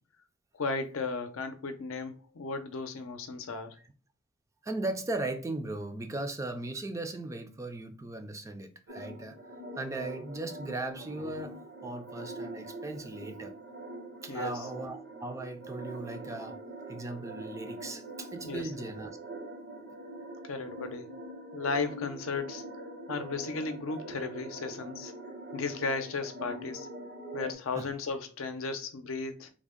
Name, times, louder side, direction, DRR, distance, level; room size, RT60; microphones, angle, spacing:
voice 1, 0.5-3.8 14.3-14.7 18.4-18.9 20.4-21.1 21.5-22.6 23.1-25.1 25.5-26.9 27.3-29.5, left 4 dB, 75° left, 0.6 m, -35 dB
voice 2, 4.6-9.4 9.8-13.5 14.2-16.6 16.9-19.1 27.8-27.9, right 2 dB, 15° right, 0.4 m, -37 dB
sound 1, 8.9-27.5, right 2 dB, 60° right, 0.7 m, -43 dB
3.5 x 2.1 x 3.6 m
head